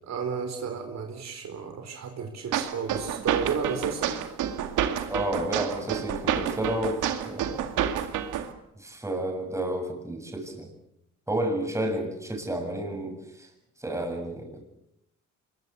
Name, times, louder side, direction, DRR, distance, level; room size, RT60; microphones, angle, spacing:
voice 1, 0.0-4.1, right 6 dB, 60° right, 5 dB, 4.2 m, -32 dB
sound 1, 2.5-8.5, right 9 dB, 85° right, 2.3 m, -29 dB
voice 2, 5.1-7.7 8.8-10.7 11.3-13.5 13.8-14.6, right 1 dB, 10° right, 3 dB, 7.0 m, -31 dB
25.0 x 22.0 x 8.3 m, 0.80 s
cardioid pair, 90°, 30 cm